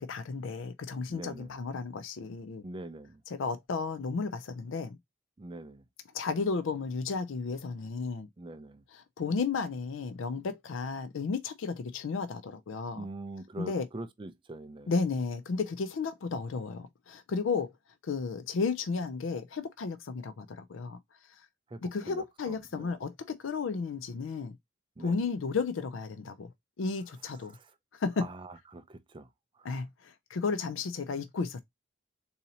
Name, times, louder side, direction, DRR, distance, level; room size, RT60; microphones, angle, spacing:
voice 1, 0.0-2.6 3.3-5.0 6.1-8.3 8.9-13.0 13.6-13.9 14.9-17.7 18.0-21.0 21.8-24.6 25.0-26.5 26.8-27.5 27.9-28.3 29.6-31.6, left 4 dB, 75° left, 0.4 m, -33 dB
voice 2, 1.1-1.6 2.6-3.2 5.4-5.8 8.4-8.8 13.0-14.9 21.7-22.9 25.0-25.2 27.5-27.7 28.2-29.3 29.5-29.7, right 2 dB, 25° right, 0.4 m, -44 dB
4.0 x 2.8 x 2.7 m
head